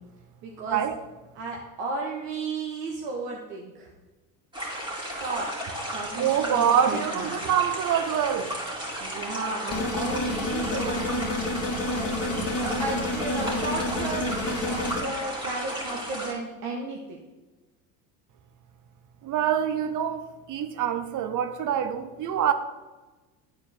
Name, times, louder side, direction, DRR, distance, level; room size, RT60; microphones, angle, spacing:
voice 1, 0.4-0.8 1.3-3.9 5.2-5.5 5.9-7.5 9.0-11.3 11.9-17.2, right 3 dB, 70° right, -1 dB, 1.3 m, -34 dB
sound 1, 4.5-16.3, right 1 dB, 10° right, 2.4 m, -34 dB
voice 2, 6.2-8.5 19.2-22.5, right 9 dB, 40° right, 9 dB, 0.9 m, -25 dB
sound 2, 9.7-15.0, left 2 dB, 30° left, 1.5 m, -29 dB
11.0 x 4.5 x 3.5 m, 1.2 s
hypercardioid pair, 80°, 49 cm